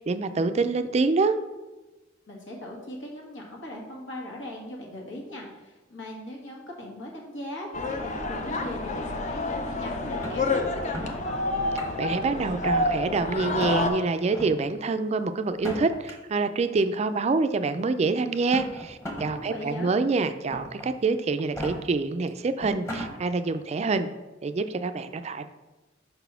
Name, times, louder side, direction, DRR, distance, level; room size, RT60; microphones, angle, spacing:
voice 1, 0.0-1.4 12.0-24.1 24.4-25.5, right 3 dB, 35° right, 10 dB, 0.3 m, -26 dB
voice 2, 2.3-11.4 19.3-19.9, left 1 dB, 80° left, -2 dB, 1.7 m, -39 dB
sound 1, 7.7-13.9, left 2 dB, 40° left, 0.6 m, -28 dB
sound 2, 10.2-11.1 11.6-12.2 12.6-13.2 13.6-13.8 14.3-14.5 15.5-16.1 17.2-17.3 18.3-19.3 19.7-19.8 20.5-20.9 21.4-21.7 22.3-22.4 22.6-23.1, equal, 15° left, 1.1 m, -36 dB
5.4 x 4.1 x 5.6 m, 1.1 s
head